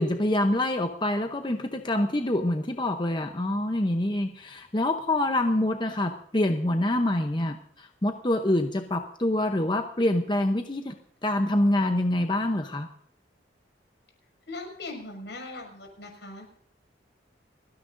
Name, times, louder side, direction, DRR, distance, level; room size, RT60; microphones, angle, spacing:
voice 1, 0.0-10.9 11.2-12.9, left 1 dB, 25° left, 6 dB, 0.8 m, -26 dB
voice 2, 14.5-16.5, left 2 dB, 70° left, 2 dB, 5.8 m, -40 dB
30.0 x 10.0 x 2.6 m, 0.64 s
head